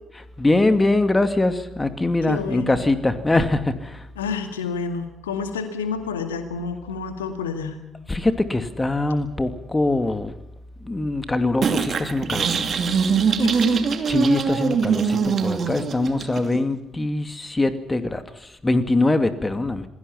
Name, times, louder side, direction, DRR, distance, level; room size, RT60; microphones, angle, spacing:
voice 1, 0.4-4.1 8.1-10.3 10.8-12.6 14.1-19.9, left 2 dB, 20° left, 9 dB, 2.5 m, -22 dB
voice 2, 2.3-2.8 4.2-7.8 13.4-13.8, left 5 dB, 80° left, 7 dB, 2.1 m, -29 dB
sound 1, 11.6-16.6, right 6 dB, 45° right, 2.6 m, -22 dB
27.5 x 21.0 x 5.7 m, 0.87 s
figure-of-eight pair, 45°, 0 cm